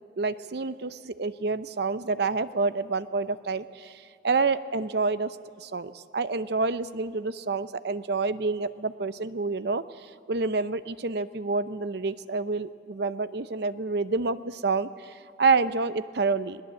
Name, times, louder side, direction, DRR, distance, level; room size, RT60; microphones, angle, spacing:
voice 1, 0.2-16.6, right 4 dB, 60° right, 13 dB, 0.7 m, -28 dB
20.5 x 18.5 x 7.6 m, 2.5 s
head